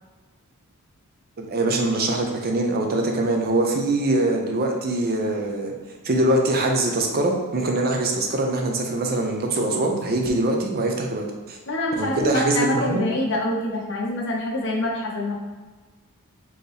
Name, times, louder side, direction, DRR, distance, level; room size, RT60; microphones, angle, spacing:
voice 1, 1.4-5.7 6.0-11.6 12.0-13.0, right 2 dB, 45° right, 2 dB, 0.6 m, -23 dB
voice 2, 11.7-15.3, left 1 dB, 55° left, -2 dB, 0.9 m, -25 dB
4.4 x 3.0 x 3.3 m, 1.3 s
head